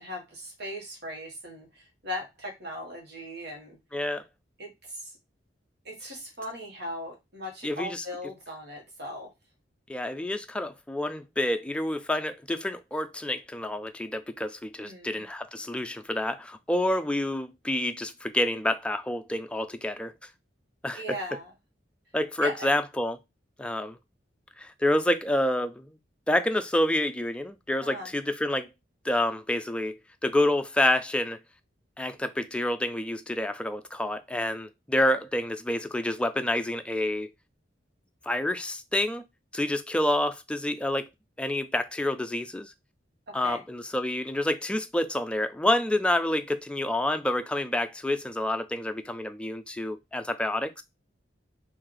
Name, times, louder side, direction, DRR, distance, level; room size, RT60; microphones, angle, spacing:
voice 1, 0.0-3.8 4.6-5.1 5.8-9.3 14.8-15.2 20.9-21.5 22.4-22.7 27.8-28.1 43.3-43.6, equal, 65° right, 1.4 m, -38 dB
voice 2, 3.9-4.2 7.6-8.0 9.9-20.1 20.8-21.0 22.1-23.2 23.6-24.0 24.6-25.9 26.3-28.7 29.0-31.4 32.0-37.3 38.3-39.2 39.5-41.1 41.4-42.7 43.3-50.7, left 1 dB, 5° left, 0.4 m, -28 dB
3.2 x 2.6 x 3.8 m
head